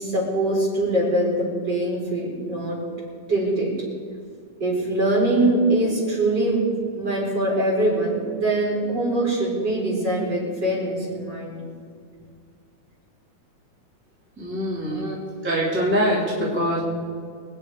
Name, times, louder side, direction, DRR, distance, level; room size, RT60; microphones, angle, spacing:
voice 1, 0.0-2.8 3.3-3.7 4.6-11.6 14.9-15.1, right 1 dB, 35° right, -4 dB, 4.9 m, -23 dB
voice 2, 14.4-15.1 15.4-16.8, equal, 5° right, -6 dB, 2.6 m, -23 dB
25.5 x 9.6 x 4.9 m, 2.2 s
omnidirectional pair, 3.5 m